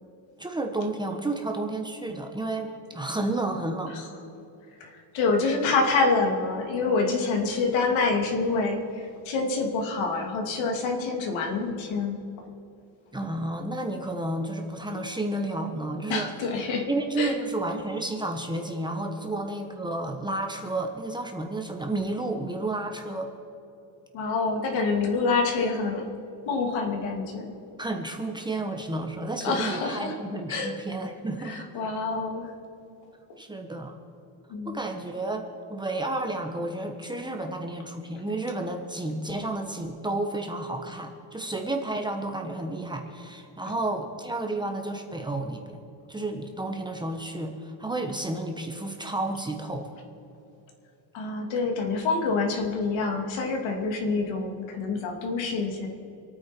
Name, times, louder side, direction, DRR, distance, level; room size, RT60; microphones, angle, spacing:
voice 1, 0.4-4.0 13.1-16.3 16.9-23.3 27.8-31.6 33.4-33.9 34.6-35.4 35.7-45.8 46.1-49.9, right 2 dB, 10° right, 3 dB, 1.2 m, -31 dB
voice 2, 4.8-12.2 16.1-16.9 17.2-17.3 24.1-26.1 26.5-27.5 29.4-30.1 30.5-30.7 31.4-32.5 34.5-34.9 51.1-55.9, left 4 dB, 75° left, 2 dB, 2.7 m, -27 dB
28.0 x 9.3 x 4.5 m, 2.8 s
cardioid pair, 160°, 46 cm